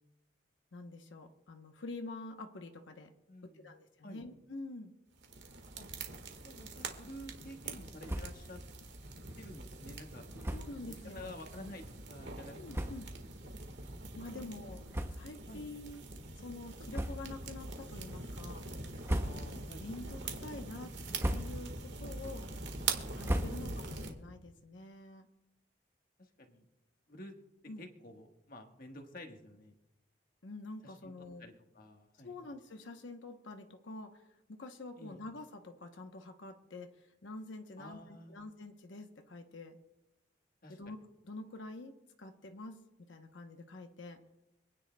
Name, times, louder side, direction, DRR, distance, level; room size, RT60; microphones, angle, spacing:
voice 1, 0.7-3.1 3.5-4.9 10.5-11.4 12.5-13.1 14.2-14.8 15.1-16.1 16.4-18.6 19.8-20.9 21.3-22.5 23.2-25.3 27.7-27.8 30.4-31.5 32.2-39.8 40.7-41.0 41.2-42.8 43.1-44.2, left 2 dB, 90° left, 4 dB, 0.9 m, -47 dB
voice 2, 3.3-3.7 4.0-4.3 5.8-5.9 6.4-8.6 9.4-10.5 10.9-12.6 12.8-13.3 14.3-15.0 15.5-15.7 19.2-19.9 26.2-26.6 27.1-27.3 27.8-29.8 30.8-31.1 31.4-32.4 35.0-35.2 37.8-38.4 40.6-40.8, left 1 dB, 50° left, 4 dB, 1.4 m, -51 dB
sound 1, 5.2-24.1, right 3 dB, 70° right, 1.6 m, -44 dB
sound 2, 8.0-8.5 8.9-9.0 9.2-9.4 10.4-10.8 11.6-11.7 12.4-12.5 12.7-13.2 13.8-13.9 14.9-15.5 15.9-16.1 16.9-17.5 17.9-18.4 18.8-19.7 20.1-20.5 21.0-21.8 22.2-24.0, right 1 dB, 15° right, 0.6 m, -38 dB
26.0 x 9.9 x 2.2 m, 0.97 s
head